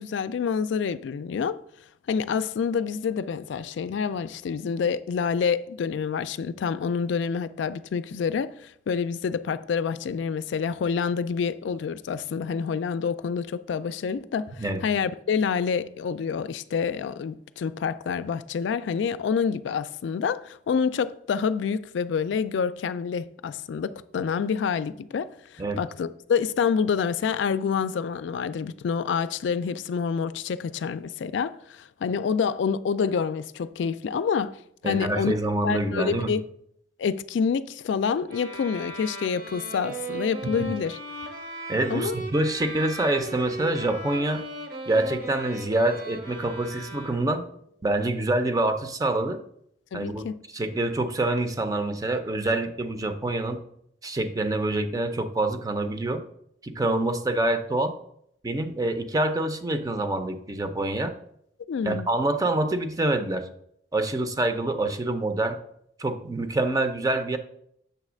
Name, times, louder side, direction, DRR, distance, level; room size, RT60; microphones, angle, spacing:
voice 1, 0.0-1.6 2.1-34.5 34.8-35.4 35.6-36.4 37.0-41.0 41.9-42.2 49.9-50.4 61.7-62.1, left 6 dB, 85° left, 0.3 m, -27 dB
voice 2, 34.8-36.3 40.6-40.7 41.7-44.4 44.9-47.4 47.8-49.4 49.9-50.2 50.5-53.6 54.0-56.2 56.6-57.9 58.4-61.1 61.8-63.4 63.9-65.6 66.0-67.4, right 2 dB, 20° right, 0.5 m, -26 dB
sound 1, 38.3-47.5, right 2 dB, 55° right, 1.0 m, -37 dB
6.9 x 3.2 x 6.1 m
head